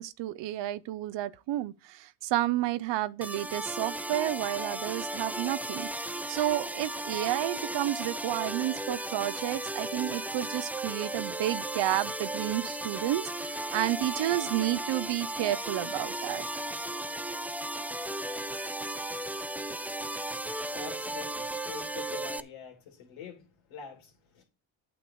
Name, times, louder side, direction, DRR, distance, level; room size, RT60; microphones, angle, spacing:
voice 1, 0.0-16.4, right 14 dB, 65° right, 0.7 m, -31 dB
sound 1, 3.2-22.4, right 1 dB, 5° right, 0.4 m, -35 dB
voice 2, 20.1-24.4, left 6 dB, 80° left, 3.1 m, -46 dB
8.6 x 6.4 x 4.7 m
supercardioid pair, 75°, 47 cm